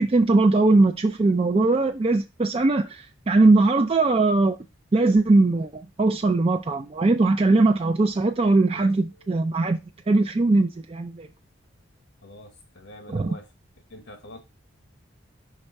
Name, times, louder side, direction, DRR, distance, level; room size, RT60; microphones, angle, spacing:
voice 1, 0.0-4.6 4.9-9.8 10.1-11.3 13.1-13.3, right 2 dB, 30° right, 0.4 m, -20 dB
voice 2, 12.2-13.4 13.9-14.4, left 1 dB, 75° left, 1.1 m, -45 dB
5.9 x 3.3 x 5.3 m
head